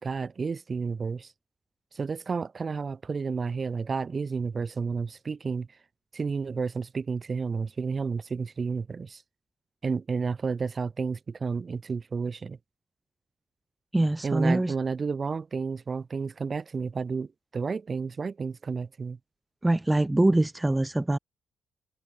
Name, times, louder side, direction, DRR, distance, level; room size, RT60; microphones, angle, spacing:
voice 1, 0.0-1.3 1.9-5.7 6.1-9.2 9.8-12.6 14.2-19.2, right 5 dB, 45° right, 3.2 m, -31 dB
voice 2, 13.9-14.7 19.6-21.2, right 2 dB, 15° right, 0.9 m, -23 dB
hypercardioid pair, 45°, 0 cm